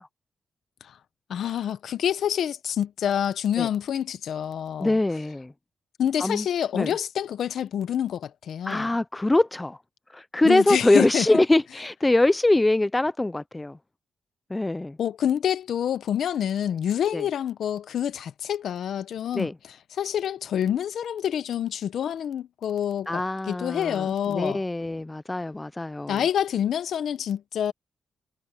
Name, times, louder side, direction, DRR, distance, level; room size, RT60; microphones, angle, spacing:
voice 1, 1.3-5.0 6.0-8.9 10.4-11.3 15.0-19.5 19.9-24.6 26.1-27.7, left 9 dB, 75° left, 0.9 m, -27 dB
voice 2, 4.8-5.5 6.2-6.5 6.7-6.9 8.7-9.8 10.1-13.8 14.5-15.0 17.1-17.2 19.3-19.5 23.1-26.2, left 2 dB, 15° left, 0.4 m, -23 dB
cardioid pair, 105°, 0 cm